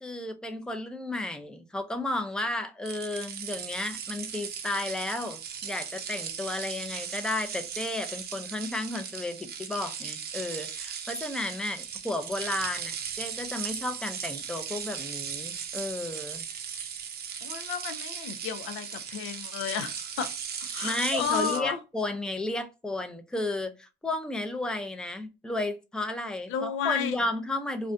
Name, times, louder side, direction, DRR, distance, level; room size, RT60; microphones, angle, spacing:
voice 1, 0.0-16.4 20.8-27.9, left 2 dB, 5° left, 0.4 m, -33 dB
sound 1, 2.8-21.6, right 7 dB, 55° right, 0.5 m, -37 dB
voice 2, 17.4-20.3 20.6-21.8 26.5-27.2, left 7 dB, 90° left, 0.5 m, -32 dB
2.5 x 2.2 x 2.4 m
cardioid pair, 90°, 20 cm